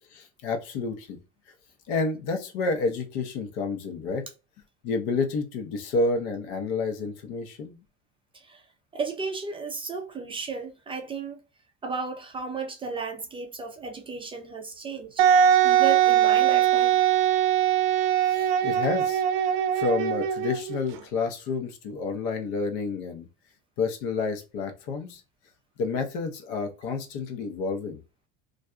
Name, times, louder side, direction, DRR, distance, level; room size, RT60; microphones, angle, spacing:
voice 1, 0.1-1.2 1.9-4.2 4.8-7.8 18.3-19.2 19.8-23.3 23.8-25.2 25.8-28.0, left 4 dB, 70° left, 0.8 m, -29 dB
voice 2, 8.9-11.4 11.8-15.2 15.6-17.0, right 4 dB, 20° right, 0.4 m, -34 dB
Wind instrument woodwind instrument, 15.2-20.8, right 10 dB, 75° right, 0.5 m, -21 dB
2.5 x 2.1 x 2.4 m
supercardioid pair, 125°, 29 cm